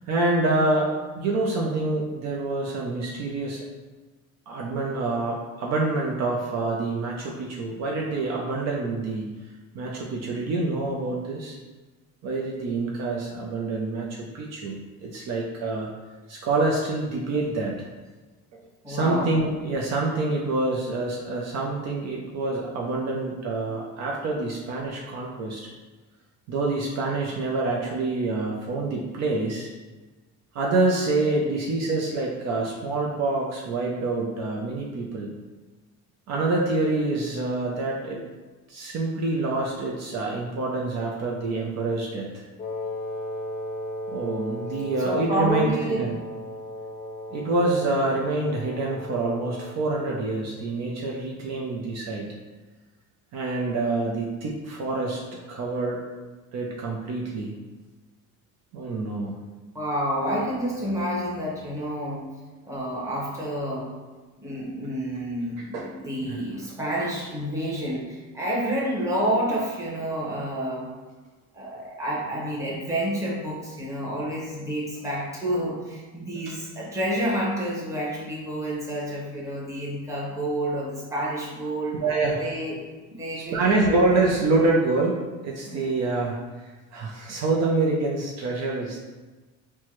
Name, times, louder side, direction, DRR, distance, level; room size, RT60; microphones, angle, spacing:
voice 1, 0.0-3.6 4.5-9.3 9.7-11.6 12.2-15.9 16.3-17.9 18.5-18.6 18.9-25.7 26.5-29.7 30.5-35.3 36.3-38.2 38.7-42.4 44.1-45.7 46.0-46.2 47.3-52.3 53.3-55.2 55.5-56.0 56.5-57.5 58.7-59.4 65.6-65.9 66.2-66.4 76.5-76.6 82.0-82.4 83.5-89.0, right 2 dB, 55° right, -2 dB, 0.6 m, -26 dB
voice 2, 18.8-19.4 45.0-46.0 59.7-62.2 62.6-63.9 64.4-70.9 71.5-82.0 82.4-82.8 83.1-84.2 85.7-85.9, right 1 dB, 10° right, -6 dB, 1.0 m, -29 dB
Wind instrument woodwind instrument, 42.6-49.9, left 1 dB, 25° left, 0.5 m, -36 dB
4.4 x 2.2 x 3.0 m, 1.3 s
cardioid pair, 125°, 32 cm